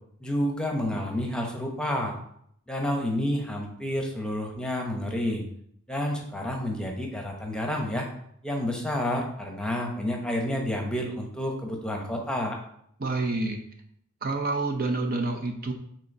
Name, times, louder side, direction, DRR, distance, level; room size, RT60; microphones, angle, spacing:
voice 1, 0.2-2.2 2.7-5.4 5.9-8.1 8.4-12.6, left 1 dB, 5° left, 1 dB, 1.0 m, -29 dB
voice 2, 13.0-13.6 14.2-15.7, right 3 dB, 40° right, 3 dB, 0.7 m, -28 dB
6.2 x 3.9 x 5.4 m, 0.70 s
head